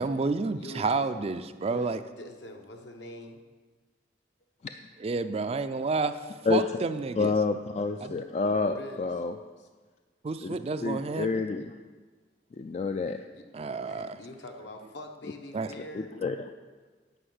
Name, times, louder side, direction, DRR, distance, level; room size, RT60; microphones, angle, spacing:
voice 1, 0.0-2.0 5.0-6.2 6.5-7.3 8.0-8.2 10.2-11.3 13.5-14.2 15.5-15.7, right 3 dB, 35° right, 10 dB, 0.4 m, -30 dB
voice 2, 0.5-1.1 1.6-3.4 8.6-9.1 13.3-13.4 13.9-16.2, left 1 dB, 70° left, 3 dB, 1.1 m, -44 dB
voice 3, 7.2-9.3 10.4-10.6 10.8-11.7 12.6-13.2 15.9-16.5, left 4 dB, 35° left, 7 dB, 0.3 m, -28 dB
9.9 x 5.4 x 7.9 m, 1.4 s
head